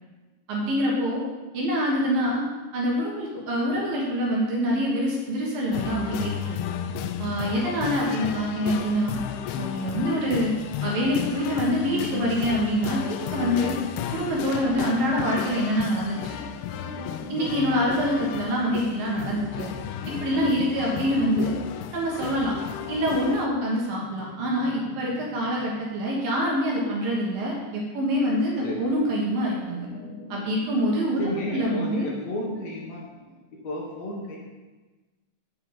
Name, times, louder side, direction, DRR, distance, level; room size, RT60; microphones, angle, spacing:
voice 1, 0.5-1.2 1.5-2.4 2.7-6.6 7.2-9.2 9.6-10.5 10.8-13.8 14.1-16.2 17.3-19.7 20.1-21.5 21.9-22.5 22.9-29.9 30.3-31.2 31.5-32.1, equal, 60° right, -3 dB, 2.9 m, -25 dB
sound 1, 5.7-23.5, left 9 dB, 85° left, 2.3 m, -33 dB
sound 2, 16.7-28.5 29.3-33.4, left 1 dB, 30° left, 1.3 m, -45 dB
voice 2, 31.2-33.0 33.5-34.4, equal, 65° left, -3 dB, 1.8 m, -32 dB
8.3 x 5.8 x 7.3 m, 1.2 s
omnidirectional pair, 5.1 m